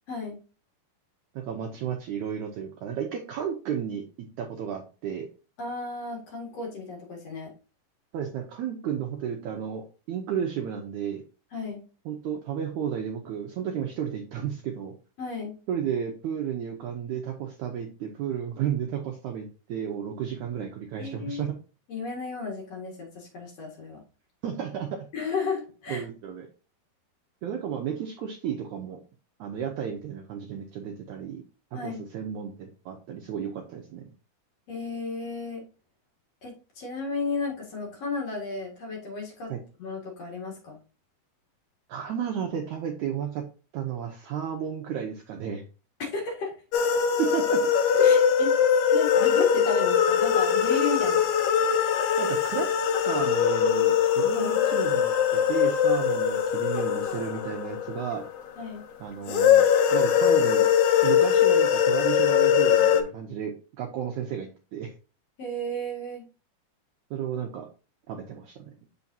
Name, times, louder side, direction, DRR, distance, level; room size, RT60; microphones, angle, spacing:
voice 1, 1.3-5.3 8.1-11.2 12.0-14.9 15.7-21.5 24.4-25.1 25.9-26.5 27.4-29.0 29.4-31.4 31.7-34.0 39.5-39.6 41.9-43.4 43.7-45.6 47.2-47.6 47.9-48.3 52.2-52.7 53.0-58.2 59.0-59.6 59.9-60.7 61.0-64.9 67.1-67.7 68.1-68.7, right 8 dB, 90° right, 2 dB, 1.7 m, -33 dB
voice 2, 5.6-7.5 11.5-11.8 15.2-15.6 21.0-21.4 21.9-24.0 25.1-26.1 31.7-32.0 34.7-35.6 36.4-39.5 39.8-40.8 46.0-46.5 48.0-48.5 48.9-51.2 54.3-54.5 58.6-58.8 65.4-66.2, left 3 dB, 50° left, -1 dB, 2.4 m, -33 dB
sound 1, 46.7-58.5 59.3-63.0, left 8 dB, 90° left, 1.7 m, -22 dB
7.1 x 5.6 x 2.7 m, 0.34 s
omnidirectional pair, 4.4 m